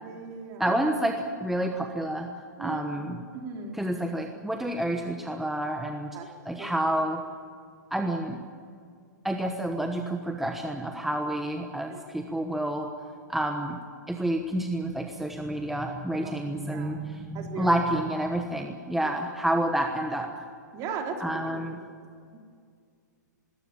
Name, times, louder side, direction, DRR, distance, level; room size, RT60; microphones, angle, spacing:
voice 1, 0.0-0.8 2.6-2.8 3.3-3.8 6.1-6.3 6.6-6.7 11.9-12.0 16.1-16.3 16.7-17.0 17.3-17.7 19.0-19.1 20.7-21.6 22.3-22.4, right 6 dB, 35° right, 2 dB, 3.7 m, -37 dB
voice 2, 0.6-2.3 2.6-3.2 3.7-6.1 6.4-7.2 7.9-8.4 9.2-12.9 13.3-13.8 14.1-20.3 21.2-21.8, right 1 dB, ahead, 3 dB, 1.2 m, -29 dB
20.5 x 17.5 x 8.9 m, 2.2 s
hypercardioid pair, 130°, 10 cm